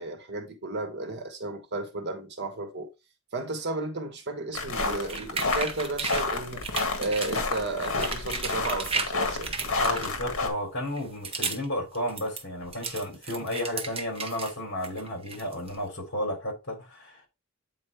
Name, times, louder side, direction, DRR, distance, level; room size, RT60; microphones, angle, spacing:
voice 1, 0.0-2.9 3.3-6.6 7.0-10.1, right 2 dB, 50° right, 1.2 m, -33 dB
sound 1, 4.5-10.5, left 3 dB, 70° left, 1.7 m, -30 dB
sound 2, 4.9-6.3 6.6-7.4 7.8-9.1 9.4-10.4 10.9-11.7 11.9-14.5 14.8-15.8, right 5 dB, 25° right, 0.8 m, -34 dB
voice 2, 9.8-17.3, left 1 dB, 55° left, 3.6 m, -33 dB
8.5 x 4.2 x 3.4 m
head